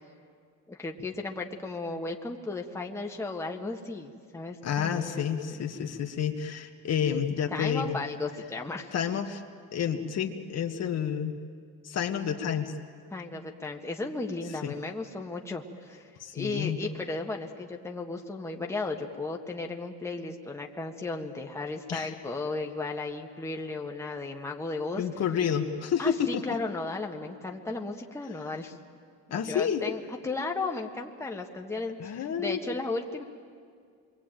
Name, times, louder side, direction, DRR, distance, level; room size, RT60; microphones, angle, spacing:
voice 1, 0.7-5.6 7.5-8.9 13.1-25.1 26.0-28.8 29.3-33.2, left 3 dB, 10° left, 1 dB, 1.6 m, -35 dB
voice 2, 4.6-8.0 8.9-9.4 9.7-11.4 11.8-12.7 14.6-14.8 16.2-16.8 21.9-22.1 25.0-26.4 29.3-29.8 32.0-32.6, left 8 dB, 50° left, 4 dB, 1.8 m, -29 dB
27.0 x 23.0 x 9.1 m, 2.2 s
cardioid pair, 145°, 33 cm